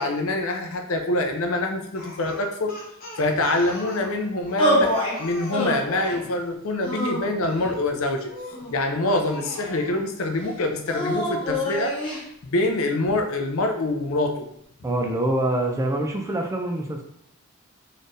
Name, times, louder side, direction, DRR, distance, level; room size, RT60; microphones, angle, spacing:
voice 1, 0.0-2.8 3.2-4.9 5.2-8.3 8.7-12.0 12.4-14.5, left 2 dB, 70° left, 4 dB, 0.6 m, -25 dB
Speech, 1.9-6.3 8.3-8.7 9.2-10.0, left 1 dB, 40° left, 1.2 m, -40 dB
sound 1, 4.6-5.2 5.5-6.2 6.8-7.7 8.5-9.5 10.9-12.2, left 1 dB, 25° left, 1.0 m, -26 dB
voice 2, 14.8-17.0, right 1 dB, 15° right, 2 dB, 0.4 m, -25 dB
4.1 x 3.2 x 2.6 m, 0.73 s
head